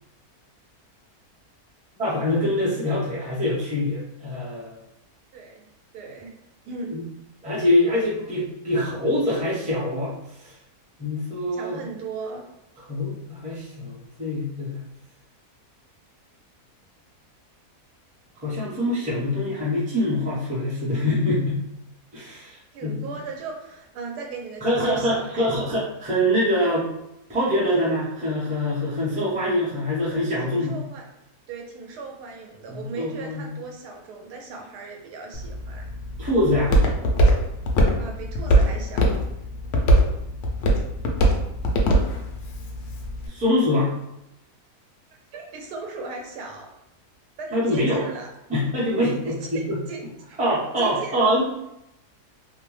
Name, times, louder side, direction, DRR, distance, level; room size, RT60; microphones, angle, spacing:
voice 1, 2.0-4.8 6.9-7.0 7.4-10.5 11.0-11.8 12.9-14.8 18.4-21.6 22.1-22.9 24.6-26.9 27.3-30.8 32.7-33.5 36.2-36.7 43.3-43.9 47.5-48.0 48.5-49.8 50.4-51.4, left 1 dB, 10° right, -8 dB, 0.5 m, -24 dB
voice 2, 5.3-5.6 5.9-6.3 6.7-7.0 11.5-12.5 22.7-25.5 30.4-31.0 31.5-35.9 38.0-39.3 45.3-46.8 47.4-48.3 49.1-50.0 50.3-50.4 50.8-51.2, right 4 dB, 85° right, 2 dB, 1.2 m, -37 dB
Walk footsteps, 35.3-43.3, right 1 dB, 80° left, 0.5 m, -22 dB
2.7 x 2.1 x 3.1 m, 0.85 s
omnidirectional pair, 1.7 m